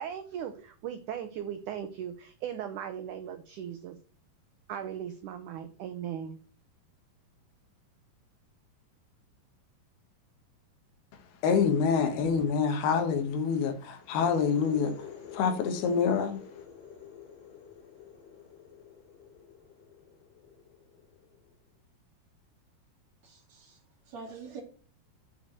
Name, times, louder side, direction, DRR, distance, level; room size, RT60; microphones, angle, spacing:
voice 1, 0.0-4.0 4.7-6.4, right 9 dB, 85° right, 1.7 m, -38 dB
voice 2, 11.1-16.4, left 6 dB, 75° left, 3.2 m, -27 dB
sound 1, 14.0-21.6, left 8 dB, 55° left, 4.6 m, -48 dB
voice 3, 23.2-23.8 24.1-24.6, right 5 dB, 50° right, 2.8 m, -45 dB
7.9 x 5.1 x 7.5 m
omnidirectional pair, 4.6 m